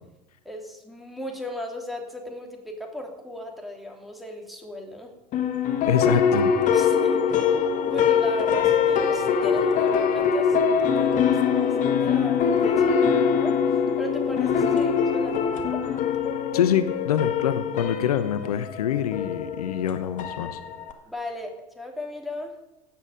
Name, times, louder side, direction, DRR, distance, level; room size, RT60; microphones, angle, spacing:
voice 1, 0.4-5.1 6.7-7.5 7.8-13.6 14.0-15.8 21.0-22.5, left 1 dB, ahead, 2 dB, 2.8 m, -37 dB
sound 1, 5.3-20.9, left 6 dB, 40° left, 1.6 m, -23 dB
voice 2, 5.9-6.5 16.5-20.6, left 9 dB, 70° left, 11 dB, 0.8 m, -25 dB
16.0 x 8.7 x 5.0 m, 0.98 s
figure-of-eight pair, 75°, 20 cm